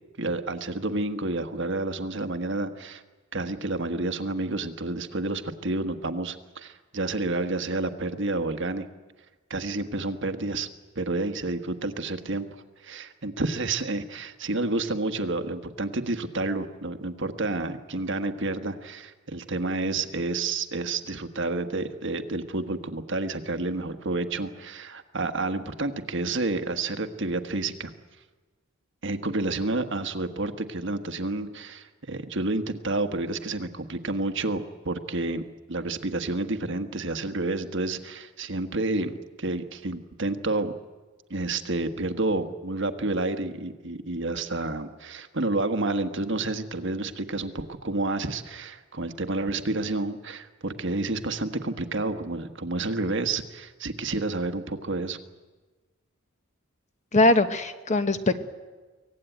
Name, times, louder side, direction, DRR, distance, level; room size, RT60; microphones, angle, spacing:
voice 1, 0.2-3.0 3.3-8.9 9.5-10.7 10.9-12.5 12.8-27.9 29.0-35.4 35.7-40.7 41.3-55.2, right 2 dB, 55° right, 8 dB, 1.4 m, -30 dB
voice 2, 57.1-58.5, left 2 dB, 35° left, 9 dB, 1.1 m, -21 dB
24.0 x 18.0 x 9.2 m, 1.3 s
head